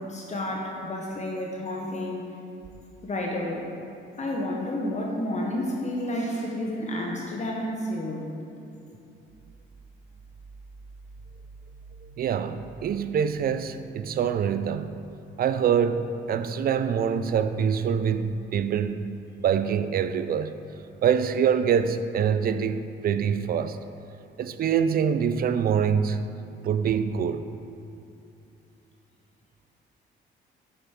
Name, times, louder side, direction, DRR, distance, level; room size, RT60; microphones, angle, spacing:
voice 1, 0.0-2.3 3.0-3.7 4.2-8.3, left 1 dB, 35° left, 0.9 m, -30 dB
voice 2, 12.2-15.0 15.4-19.0 19.4-20.5 21.0-23.8 24.4-26.2 26.6-27.4, right 7 dB, 50° right, 0.4 m, -25 dB
7.0 x 6.9 x 3.6 m
cardioid pair, 90°, 20 cm